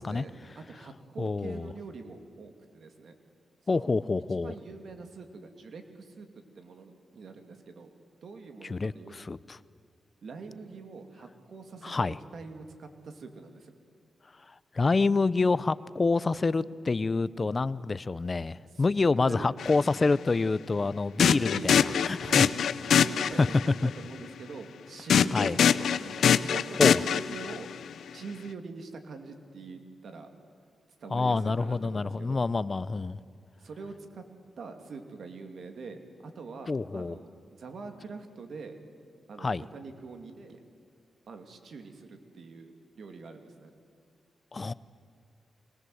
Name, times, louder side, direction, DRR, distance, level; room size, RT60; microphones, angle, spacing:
voice 1, 0.0-3.1 3.7-3.9 4.4-7.9 8.2-9.1 10.2-13.7 18.7-18.9 19.2-19.5 21.5-22.6 22.8-27.7 28.1-30.3 31.0-32.4 33.6-34.2 34.6-38.8 39.3-40.6 41.3-43.7 44.6-44.7, right 4 dB, 70° right, 6 dB, 2.6 m, -44 dB
voice 2, 1.2-1.7 3.7-4.5 8.6-9.6 11.8-12.2 14.7-21.8 22.0-22.5 23.4-23.5 23.8-23.9 25.3-25.6 26.8-27.0 31.1-33.2 36.7-37.2 39.4-39.6 44.5-44.7, left 3 dB, 40° left, 18 dB, 0.7 m, -27 dB
sound 1, 19.6-19.8 21.2-23.7 25.1-27.7, left 8 dB, 85° left, 0.6 m, -24 dB
24.5 x 19.5 x 8.0 m, 2.2 s
cardioid pair, 70°, 0 cm